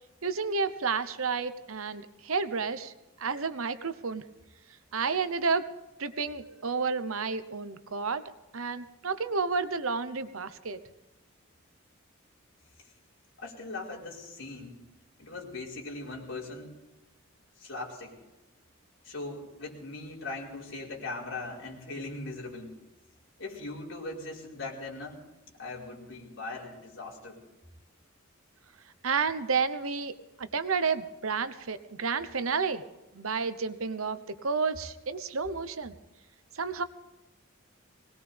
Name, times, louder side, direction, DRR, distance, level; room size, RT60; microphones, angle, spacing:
voice 1, 0.2-2.9 3.2-4.2 4.9-5.7 6.0-8.2 8.5-10.8 29.0-30.1 30.4-32.8 33.1-35.9 36.5-36.8, right 5 dB, 85° right, 12 dB, 1.0 m, -31 dB
voice 2, 13.4-14.8 15.2-16.7 17.6-18.1 19.0-22.7 23.4-25.2 25.6-27.4, left 2 dB, 60° left, -4 dB, 4.9 m, -40 dB
21.5 x 19.0 x 3.5 m, 1.1 s
head